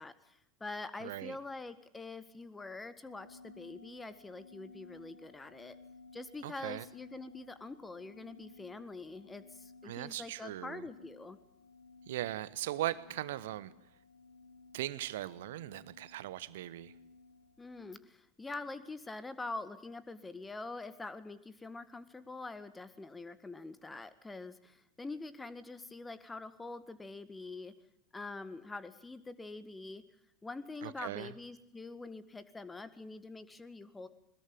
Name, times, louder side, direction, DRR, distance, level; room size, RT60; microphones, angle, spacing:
voice 1, 0.0-5.7 6.1-11.4 17.6-27.7 28.1-30.0 30.4-34.1, left 3 dB, 10° left, 13 dB, 1.8 m, -45 dB
voice 2, 1.0-1.4 6.4-6.8 9.8-10.8 12.1-13.7 14.7-16.9 30.8-31.3, right 14 dB, 60° right, 18 dB, 1.1 m, -39 dB
sound 1, 3.0-18.0, left 3 dB, 80° left, 2.4 m, -58 dB
22.5 x 20.5 x 8.9 m, 0.79 s
figure-of-eight pair, 80°, 0 cm